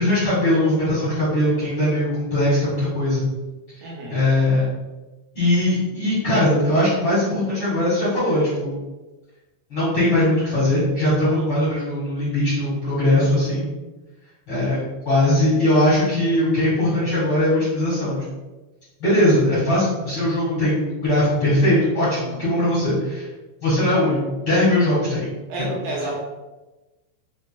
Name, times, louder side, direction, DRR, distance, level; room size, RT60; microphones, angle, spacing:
voice 1, 0.0-3.2 4.1-4.7 5.4-8.8 9.7-13.6 14.5-14.8 15.1-18.2 19.0-23.3 23.6-25.3 25.6-25.7, left 1 dB, 50° left, -11 dB, 1.8 m, -20 dB
voice 2, 3.8-4.2 25.5-26.2, right 2 dB, 75° right, -4 dB, 2.4 m, -29 dB
5.8 x 2.7 x 2.2 m, 1.1 s
omnidirectional pair, 4.5 m